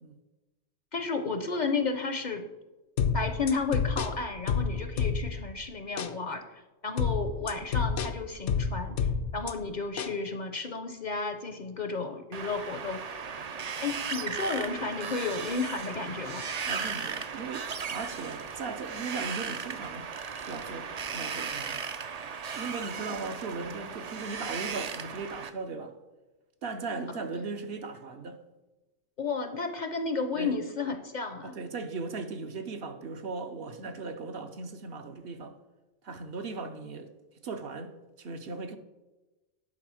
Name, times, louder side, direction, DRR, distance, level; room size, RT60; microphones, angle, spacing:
voice 1, 0.9-2.5 3.1-9.0 9.3-13.2 13.8-16.5 23.0-23.3 27.3-27.4 29.2-31.5, left 4 dB, 50° left, 0.6 m, -33 dB
sound 1, 3.0-5.5 6.0-6.2 7.0-9.5 10.0-10.2, left 6 dB, 90° left, 1.0 m, -29 dB
Wind, 12.3-25.5, right 6 dB, 45° right, 0.5 m, -36 dB
voice 2, 16.7-21.8 22.5-25.9 26.6-28.4 30.4-30.6 31.4-35.6 36.0-37.1 37.4-38.8, right 4 dB, 65° right, 0.9 m, -38 dB
10.0 x 4.3 x 6.2 m
omnidirectional pair, 1.2 m